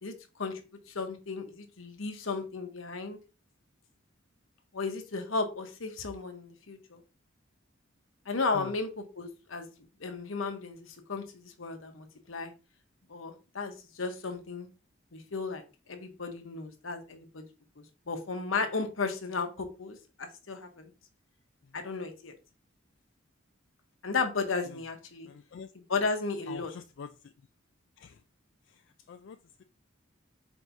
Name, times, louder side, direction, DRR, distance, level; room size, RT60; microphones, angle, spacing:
voice 1, 0.0-0.6 0.9-3.2 4.7-7.0 8.3-9.7 10.0-12.5 13.1-14.7 15.1-15.6 15.9-17.4 17.8-20.9 21.7-22.3 24.0-25.3 25.9-26.7, left 4 dB, 90° left, 1.0 m, -34 dB
voice 2, 25.3-25.7 26.5-27.3 28.0-28.2 28.7-29.6, left 6 dB, 65° left, 0.3 m, -46 dB
4.6 x 4.4 x 2.6 m
head